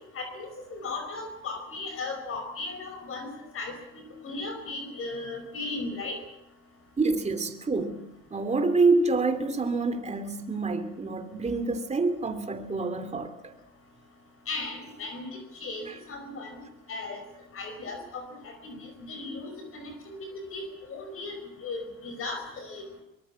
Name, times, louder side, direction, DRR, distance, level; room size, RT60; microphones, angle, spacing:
voice 1, 0.1-3.3 3.5-6.2 14.5-16.6 16.9-17.2 17.5-20.2 20.5-21.4 21.6-22.8, left 3 dB, 45° left, 5.0 m, -37 dB
voice 2, 7.0-8.0 8.3-13.5 15.9-16.0, right 3 dB, 20° right, 3.0 m, -27 dB
23.5 x 20.0 x 7.2 m
supercardioid pair, 100°, 31 cm